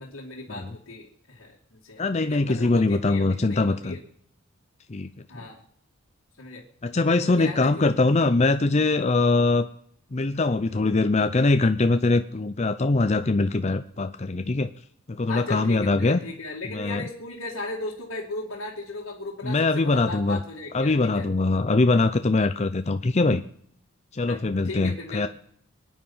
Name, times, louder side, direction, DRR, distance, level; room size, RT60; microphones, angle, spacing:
voice 1, 0.0-4.0 5.3-5.6 6.4-6.6 7.1-7.8 15.3-21.3 24.3-25.3, left 2 dB, 90° left, -3 dB, 2.3 m, -37 dB
voice 2, 2.0-3.9 4.9-5.1 6.8-9.7 10.1-14.7 15.1-16.2 16.7-17.0 19.4-20.4 20.7-23.4 24.1-25.3, left 3 dB, 35° left, 9 dB, 0.6 m, -22 dB
24.0 x 9.5 x 5.6 m, 0.66 s
head